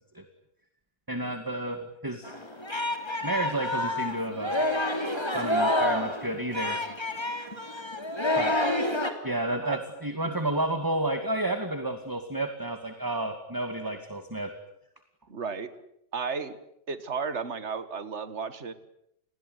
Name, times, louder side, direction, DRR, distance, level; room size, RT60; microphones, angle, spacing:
voice 1, 1.1-2.3 3.2-4.7 5.3-6.8 8.4-8.6 9.2-14.5, right 1 dB, 10° right, 7 dB, 2.2 m, -31 dB
Singing, 2.2-9.1, left 1 dB, 15° left, 3.3 m, -28 dB
voice 2, 15.3-15.7 16.1-16.6 16.9-18.7, right 5 dB, 40° right, 12 dB, 2.1 m, -33 dB
29.0 x 21.0 x 9.5 m, 0.77 s
omnidirectional pair, 1.8 m